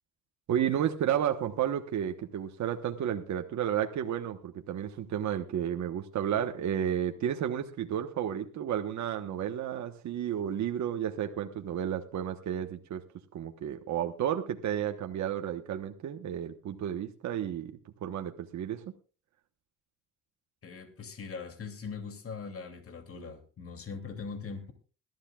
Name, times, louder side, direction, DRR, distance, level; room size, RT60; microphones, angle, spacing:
voice 1, 0.5-13.1 13.3-18.8, right 9 dB, 70° right, 5 dB, 1.3 m, -32 dB
voice 2, 20.6-24.7, left 5 dB, 50° left, 6 dB, 2.9 m, -41 dB
21.5 x 13.0 x 2.4 m, 0.34 s
cardioid pair, 90°, 30 cm